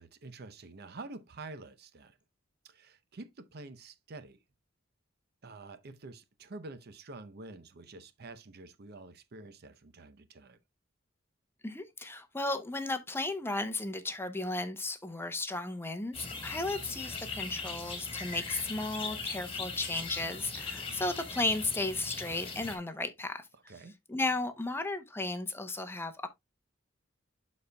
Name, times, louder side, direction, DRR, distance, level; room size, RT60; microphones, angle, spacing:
voice 1, 0.0-2.2 2.6-4.4 5.4-10.6 23.7-24.0, right 3 dB, 55° right, 0.7 m, -48 dB
voice 2, 11.6-23.5 24.1-26.3, left 2 dB, 10° left, 0.7 m, -34 dB
sound 1, 16.1-22.8, left 4 dB, 30° left, 1.7 m, -40 dB
12.0 x 4.2 x 2.2 m
head